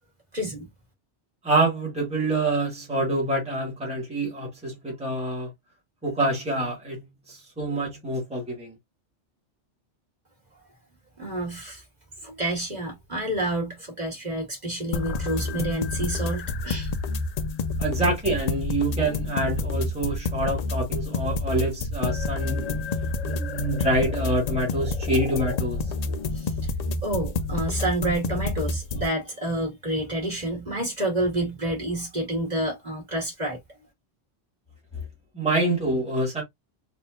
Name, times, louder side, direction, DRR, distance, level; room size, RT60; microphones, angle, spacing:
voice 1, 0.3-0.7 11.2-11.8 12.2-16.9 26.3-26.5 27.0-33.6, right 1 dB, 35° right, 1.9 m, -29 dB
voice 2, 1.4-5.5 6.0-8.7 17.8-22.9 23.2-26.0 35.3-36.4, right 1 dB, 5° right, 1.5 m, -26 dB
sound 1, 14.9-29.1, left 3 dB, 75° left, 0.3 m, -29 dB
4.1 x 2.8 x 2.3 m
omnidirectional pair, 1.2 m